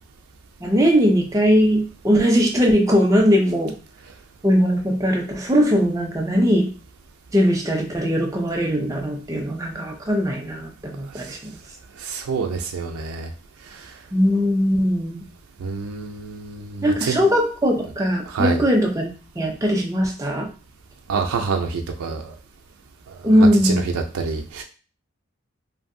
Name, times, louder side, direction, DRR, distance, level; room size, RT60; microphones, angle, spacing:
voice 1, 0.6-3.7 4.4-6.7 7.3-11.6 14.1-15.2 16.8-19.1 19.4-20.5 23.2-23.8, equal, 15° right, 1 dB, 0.4 m, -19 dB
voice 2, 12.0-13.3 13.7-14.0 15.6-17.2 18.3-18.6 21.1-22.4 23.1-23.3 23.6-23.8 24.1-24.6, right 5 dB, 85° right, 3 dB, 0.4 m, -27 dB
2.7 x 2.6 x 2.5 m, 0.37 s
head